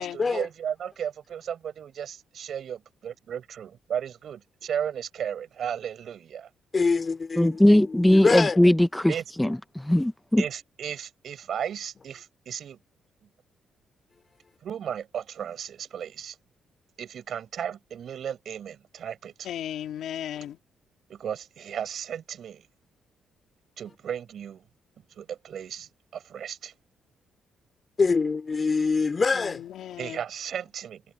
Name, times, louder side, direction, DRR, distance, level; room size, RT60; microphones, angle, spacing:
voice 1, 0.0-6.5 9.1-9.2 10.4-12.8 14.6-16.4 17.0-19.5 21.1-22.7 23.8-24.6 25.2-26.7 30.0-31.0, right 9 dB, 65° right, 6.7 m, -35 dB
voice 2, 6.7-8.6 28.0-29.6, left 4 dB, 35° left, 2.5 m, -25 dB
voice 3, 7.4-10.4, left 1 dB, 5° left, 0.5 m, -20 dB
voice 4, 19.4-20.6 29.3-30.2, left 10 dB, 80° left, 2.7 m, -35 dB
cardioid pair, 95°, 0 cm